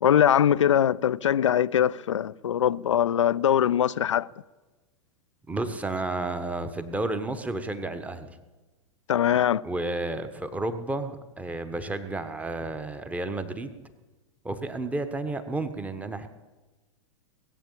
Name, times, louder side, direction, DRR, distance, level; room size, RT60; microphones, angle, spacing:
voice 1, 0.0-4.3 9.1-9.6, left 9 dB, 70° left, 0.4 m, -22 dB
voice 2, 5.5-8.4 9.6-13.8 14.4-16.3, right 2 dB, 10° right, 1.2 m, -31 dB
19.5 x 8.1 x 8.7 m
figure-of-eight pair, 95°, 16 cm